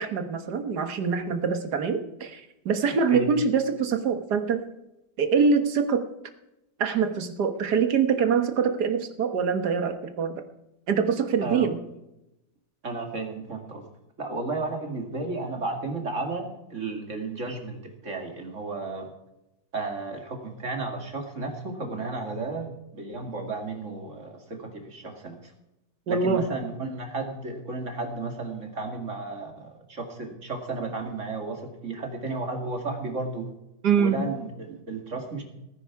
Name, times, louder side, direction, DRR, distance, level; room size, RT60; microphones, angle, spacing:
voice 1, 0.0-4.6 5.2-6.1 6.8-10.4 10.9-11.8 26.1-26.5 33.8-34.2, right 6 dB, 70° right, 8 dB, 1.9 m, -24 dB
voice 2, 11.4-11.7 12.8-13.8 14.2-19.1 19.7-25.5 26.1-33.5 34.0-35.4, right 3 dB, 45° right, 4 dB, 2.6 m, -33 dB
18.0 x 10.0 x 4.8 m, 0.91 s
omnidirectional pair, 1.8 m